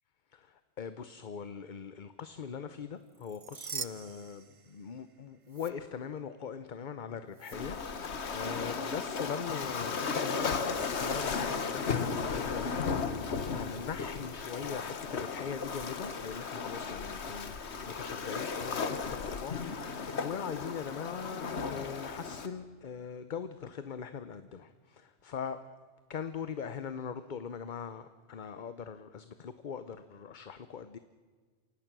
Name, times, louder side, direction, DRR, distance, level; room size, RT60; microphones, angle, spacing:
voice 1, 0.8-25.6 26.1-31.0, left 7 dB, 50° left, 12 dB, 0.9 m, -41 dB
sound 1, 3.1-5.1 5.5-5.7 7.3-7.6, right 6 dB, 40° right, 0.6 m, -43 dB
Waves surf, 7.5-22.5, left 5 dB, 90° left, 1.6 m, -35 dB
28.0 x 17.0 x 6.1 m, 1.5 s
omnidirectional pair, 1.1 m